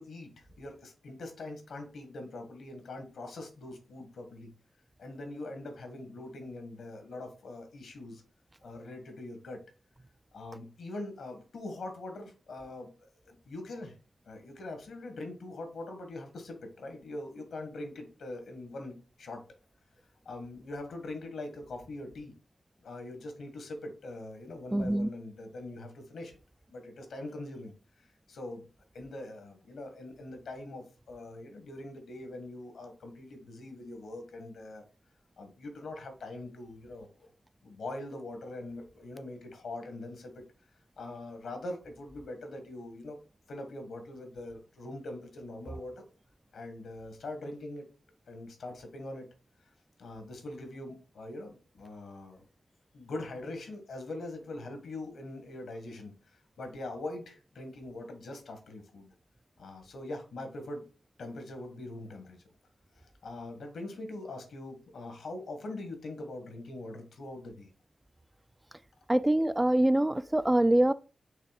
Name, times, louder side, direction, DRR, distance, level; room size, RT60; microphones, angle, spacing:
voice 1, 0.0-4.5 5.0-8.2 8.6-9.6 10.3-14.0 14.2-19.4 20.2-22.3 22.8-26.3 26.7-28.7 28.9-34.8 35.4-37.3 37.6-40.4 41.0-43.2 43.5-46.0 46.5-47.8 48.3-49.3 50.0-52.4 52.9-56.1 56.6-59.1 59.6-60.9 61.2-62.4 62.9-67.7, left 2 dB, 85° left, 1.7 m, -42 dB
voice 2, 24.7-25.1 69.1-70.9, right 1 dB, 15° right, 0.4 m, -24 dB
5.7 x 3.5 x 5.1 m
cardioid pair, 60°, 0 cm